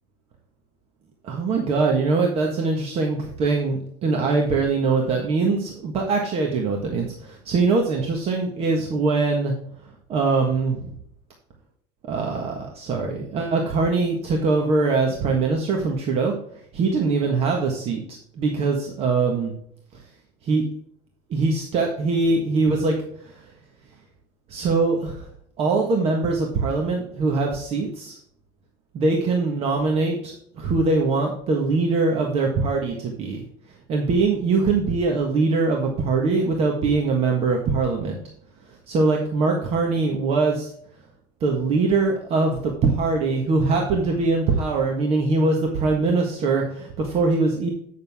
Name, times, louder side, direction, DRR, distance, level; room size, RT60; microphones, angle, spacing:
voice 1, 1.2-9.5 10.1-10.9 12.1-16.4 16.7-19.5 20.4-20.6 21.3-23.0 23.2-23.4 24.5-25.3 25.6-28.2 28.9-33.5 33.9-38.2 38.7-40.7 41.4-47.7, right 3 dB, 45° right, 1 dB, 1.5 m, -22 dB
9.2 x 6.6 x 3.6 m, 0.67 s
cardioid pair, 135°, 14 cm